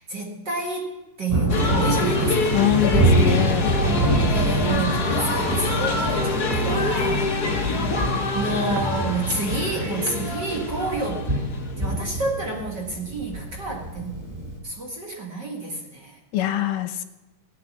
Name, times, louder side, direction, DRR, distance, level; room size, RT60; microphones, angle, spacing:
voice 1, 0.0-2.7 3.8-7.3 8.3-11.2 11.8-14.2 14.6-16.2, right 3 dB, 40° right, -1 dB, 1.9 m, -29 dB
Thunder, 1.3-14.6, right 1 dB, 5° right, 3.8 m, -26 dB
sound 1, 1.5-11.8, left 2 dB, 40° left, 1.6 m, -26 dB
voice 2, 2.5-3.7 4.2-4.4 16.3-17.0, left 12 dB, 80° left, 9 dB, 2.4 m, -24 dB
sound 2, 4.2-5.3 6.5-7.8 8.8-10.0, right 6 dB, 65° right, 2.1 m, -32 dB
18.5 x 8.4 x 7.3 m, 1.1 s
omnidirectional pair, 3.8 m